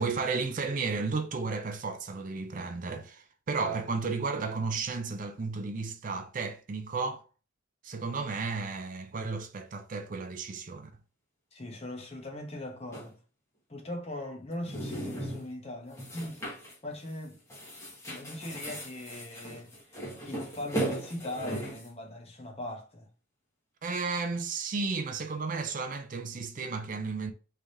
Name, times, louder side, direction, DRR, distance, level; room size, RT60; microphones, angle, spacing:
voice 1, 0.0-7.2 7.8-10.9 23.8-27.3, right 4 dB, 40° right, 0.4 m, -33 dB
voice 2, 11.5-13.2 13.7-16.5 16.8-17.4 18.1-19.7 20.2-23.1, left 1 dB, 30° left, 0.9 m, -40 dB
sound 1, 12.9-13.1 14.5-15.5 15.9-16.7 17.1-17.2 17.5-21.9, right 1 dB, 15° left, 1.3 m, -37 dB
3.5 x 3.2 x 2.7 m
head